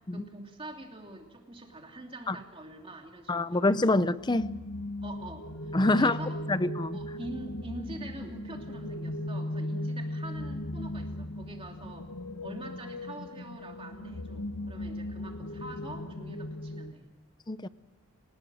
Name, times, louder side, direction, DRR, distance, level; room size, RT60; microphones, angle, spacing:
voice 1, 0.1-3.8 5.0-6.4 6.9-12.1 12.4-17.1, right 1 dB, 25° right, 3 dB, 2.9 m, -45 dB
voice 2, 3.3-4.6 5.7-6.2 6.5-7.0 17.5-17.7, left 2 dB, 20° left, 15 dB, 0.6 m, -26 dB
sound 1, 4.2-16.9, left 1 dB, 90° left, 1.0 m, -37 dB
28.0 x 18.5 x 6.4 m, 1.2 s
head